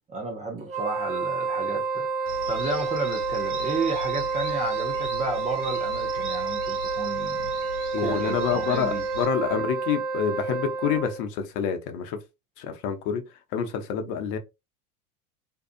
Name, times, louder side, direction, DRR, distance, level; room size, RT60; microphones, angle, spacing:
voice 1, 0.1-7.5 8.0-9.0, right 3 dB, 15° right, 0.6 m, -32 dB
Wind instrument woodwind instrument, 0.6-11.2, right 4 dB, 60° right, 0.7 m, -29 dB
sound 1, 2.3-9.3, right 1 dB, 80° right, 1.1 m, -39 dB
voice 2, 7.9-12.2 12.6-13.2 13.5-14.4, left 7 dB, 55° left, 0.8 m, -27 dB
2.7 x 2.4 x 2.5 m
hypercardioid pair, 90°, 44 cm